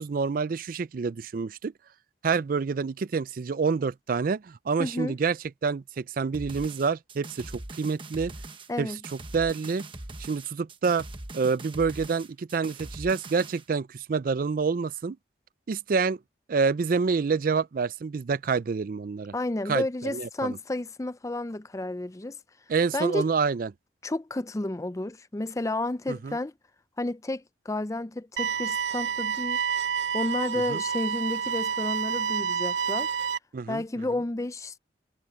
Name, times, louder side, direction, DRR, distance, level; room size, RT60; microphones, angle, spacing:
voice 1, 0.0-1.7 2.2-5.4 5.6-8.3 8.8-8.9 9.3-9.9 10.2-11.0 11.3-15.2 15.7-16.2 16.5-19.3 19.7-20.6 22.7-23.7 26.1-26.4 30.7-30.8 33.5-33.8, right 5 dB, 50° right, 0.4 m, -27 dB
voice 2, 4.8-5.2 8.7-9.0 19.3-22.4 22.9-23.3 24.0-26.5 27.0-29.6 30.1-33.1 33.7-34.8, left 2 dB, 15° left, 0.4 m, -31 dB
sound 1, 6.3-13.6, right 2 dB, 30° right, 1.2 m, -41 dB
sound 2, 28.4-33.4, right 7 dB, 80° right, 0.7 m, -29 dB
head